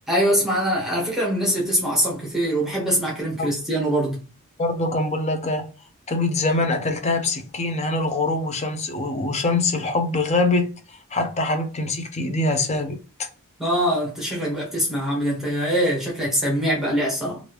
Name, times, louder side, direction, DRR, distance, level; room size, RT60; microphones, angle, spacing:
voice 1, 0.1-4.2 13.6-17.4, equal, ahead, 1.1 m, -23 dB
voice 2, 4.6-5.7 6.1-10.7 11.1-13.3, left 2 dB, 30° left, 0.6 m, -24 dB
3.1 x 2.5 x 3.1 m
head